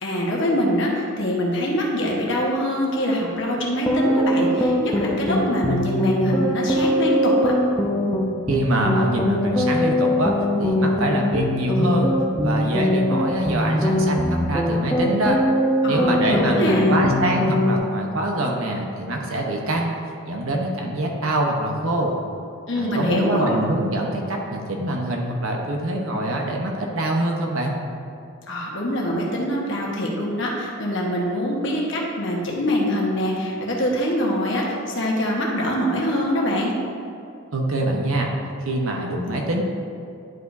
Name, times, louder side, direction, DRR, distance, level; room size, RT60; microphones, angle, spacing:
voice 1, 0.0-7.5 15.8-16.9 22.7-23.6 28.5-36.8, equal, 55° left, -3 dB, 1.2 m, -24 dB
sound 1, 3.9-17.8, left 1 dB, 10° left, 0.7 m, -21 dB
voice 2, 8.5-10.3 10.6-12.1 12.4-15.4 15.9-20.0 20.3-22.2 22.8-27.7 37.5-38.3 38.6-39.6, right 1 dB, 70° right, 0 dB, 0.9 m, -24 dB
10.5 x 5.0 x 2.7 m, 2.5 s
head